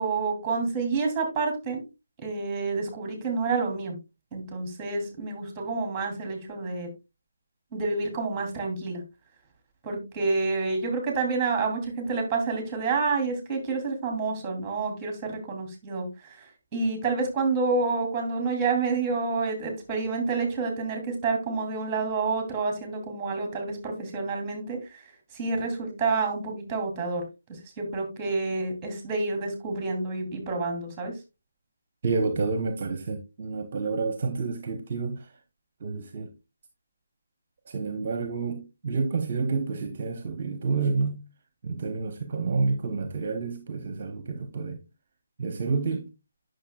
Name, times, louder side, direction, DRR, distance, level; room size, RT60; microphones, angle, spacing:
voice 1, 0.0-1.8 2.2-4.0 4.3-6.9 7.7-9.0 9.8-25.1 25.3-27.2 27.5-31.1, right 4 dB, 15° right, 2.7 m, -29 dB
voice 2, 32.0-35.3 35.8-36.3 37.7-41.2 41.6-44.8 45.4-46.1, right 4 dB, 40° right, 0.8 m, -29 dB
9.9 x 6.3 x 2.2 m
figure-of-eight pair, 150°, 0 cm